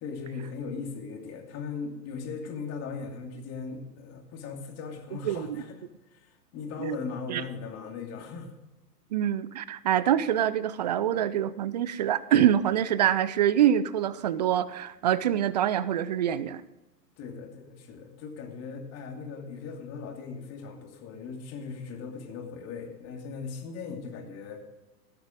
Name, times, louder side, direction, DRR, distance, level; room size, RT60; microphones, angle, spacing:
voice 1, 0.0-5.8 6.1-8.5 17.2-24.6, left 5 dB, 30° left, 3 dB, 2.5 m, -38 dB
voice 2, 5.3-5.6 6.8-7.0 7.3-7.4 9.1-16.6, right 10 dB, 30° right, 17 dB, 0.4 m, -25 dB
17.0 x 8.0 x 5.1 m, 1.0 s
figure-of-eight pair, 105°, 49 cm